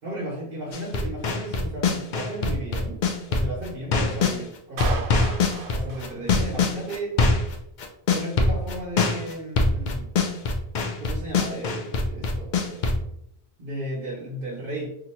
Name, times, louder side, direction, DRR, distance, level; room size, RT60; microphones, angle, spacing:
voice 1, 0.0-3.0 3.3-5.1 5.7-7.2 8.1-10.1 11.0-13.0 13.6-15.0, right 1 dB, 60° right, -5 dB, 1.2 m, -34 dB
sound 1, 0.7-4.4 4.8-13.0, left 3 dB, 55° left, 0.6 m, -23 dB
Clapping, 4.8-6.8, right 3 dB, 90° right, 0.9 m, -35 dB
2.8 x 2.5 x 4.3 m, 0.74 s
omnidirectional pair, 1.1 m